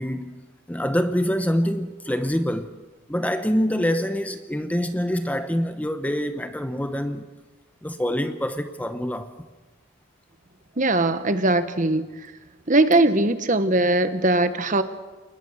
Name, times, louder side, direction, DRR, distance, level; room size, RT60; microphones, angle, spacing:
voice 1, 0.0-2.7 3.1-7.3 7.8-9.3, equal, 5° left, 0.9 m, -25 dB
voice 2, 10.8-12.1 12.7-14.8, right 2 dB, 35° right, 1.2 m, -20 dB
29.0 x 20.0 x 6.6 m
head